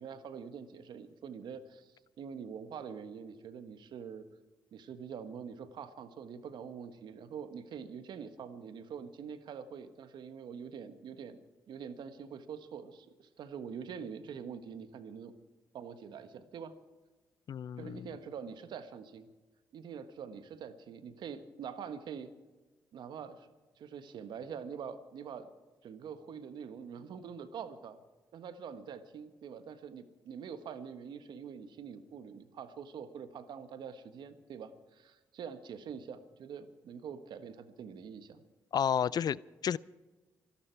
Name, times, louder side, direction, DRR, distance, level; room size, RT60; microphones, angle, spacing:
voice 1, 0.0-4.2 4.7-11.4 11.7-15.3 15.7-16.7 17.8-19.3 19.7-22.3 22.9-23.5 23.8-25.5 25.8-28.0 28.3-38.4, right 7 dB, 75° right, 10 dB, 1.4 m, -45 dB
voice 2, 17.5-18.1 38.7-39.8, left 8 dB, 60° left, 21 dB, 0.4 m, -31 dB
26.0 x 12.0 x 4.6 m, 1.2 s
supercardioid pair, 55°, 8 cm